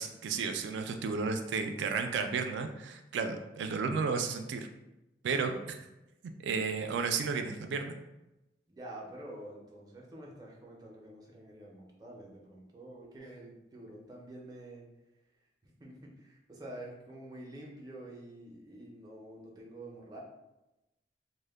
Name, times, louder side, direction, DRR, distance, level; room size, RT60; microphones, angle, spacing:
voice 1, 0.0-4.7 5.2-5.8 6.4-8.0, right 5 dB, 85° right, 6 dB, 0.3 m, -33 dB
voice 2, 8.7-14.9 15.6-20.2, right 1 dB, 20° right, -2 dB, 0.4 m, -48 dB
2.1 x 2.0 x 3.3 m, 0.96 s
head